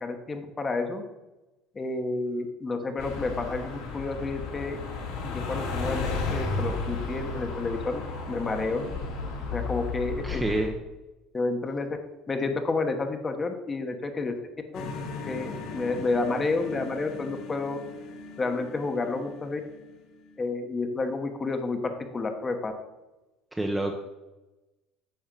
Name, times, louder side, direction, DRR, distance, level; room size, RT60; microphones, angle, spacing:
voice 1, 0.0-1.0 1.7-4.8 5.2-8.9 9.5-10.4 11.3-11.9 12.3-14.4 14.7-14.8 15.2-17.8 18.4-19.6 20.4-22.7, left 3 dB, 20° left, 6 dB, 0.9 m, -30 dB
sound 1, 3.0-10.7, left 4 dB, 80° left, 3.3 m, -33 dB
voice 2, 10.2-10.7 23.5-24.0, right 1 dB, 10° right, 2 dB, 0.7 m, -28 dB
sound 2, 14.7-20.4, left 3 dB, 60° left, 1.6 m, -40 dB
8.8 x 4.4 x 7.4 m, 1.0 s
cardioid pair, 145°, 0 cm